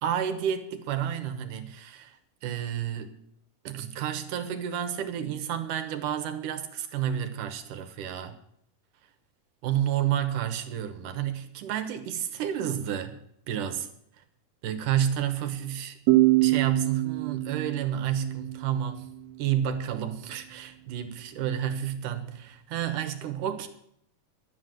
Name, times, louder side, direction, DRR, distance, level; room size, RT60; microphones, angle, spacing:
voice 1, 0.0-3.1 3.6-8.4 9.6-13.2 13.5-13.9 14.6-16.0 16.4-19.1 19.4-23.7, right 10 dB, 85° right, 2.8 m, -30 dB
sound 1, 16.1-19.5, right 18 dB, 65° right, 2.3 m, -25 dB
12.0 x 8.6 x 7.8 m
omnidirectional pair, 3.6 m